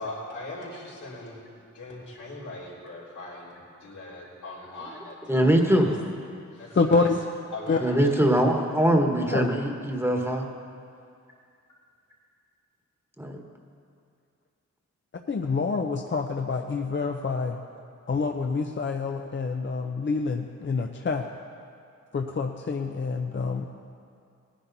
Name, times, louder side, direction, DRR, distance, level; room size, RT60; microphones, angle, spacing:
voice 1, 0.0-5.8 6.5-7.1 7.5-8.2, left 2 dB, 85° left, -6 dB, 3.3 m, -40 dB
voice 2, 5.3-5.9 7.8-10.5 13.2-13.4, right 1 dB, 10° right, 2 dB, 1.4 m, -22 dB
voice 3, 6.7-7.2 7.7-7.8 9.3-9.5 15.3-17.6 18.1-21.3 22.1-23.7, left 4 dB, 40° left, 3 dB, 0.7 m, -27 dB
18.5 x 10.0 x 4.1 m, 2.4 s
cardioid pair, 70°, 30 cm